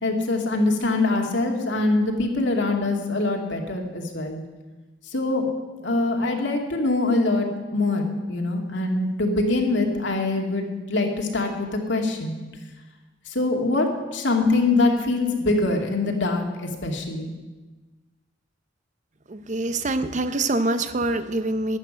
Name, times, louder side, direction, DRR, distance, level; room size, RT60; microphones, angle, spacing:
voice 1, 0.0-4.4 5.1-5.5 5.8-12.4 13.3-17.3, left 2 dB, 70° left, 2 dB, 2.4 m, -24 dB
voice 2, 19.3-21.8, right 2 dB, 40° right, 11 dB, 0.8 m, -25 dB
12.0 x 9.5 x 9.8 m, 1.2 s
head